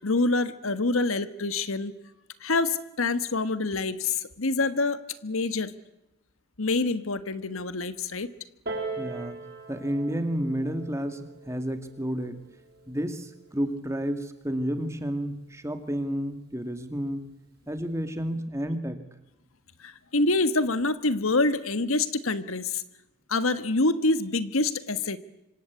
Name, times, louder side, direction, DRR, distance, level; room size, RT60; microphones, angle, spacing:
voice 1, 0.0-1.9 2.4-5.7 6.6-8.3 19.8-22.8 23.3-25.2, left 3 dB, 90° left, 13 dB, 1.5 m, -26 dB
Piano, 8.7-13.8 14.7-14.8, right 3 dB, 50° right, 7.0 m, -40 dB
voice 2, 9.0-9.4 9.7-12.4 12.9-17.3 17.7-19.0, equal, 15° right, 8 dB, 2.2 m, -31 dB
26.0 x 25.5 x 8.3 m, 0.91 s
head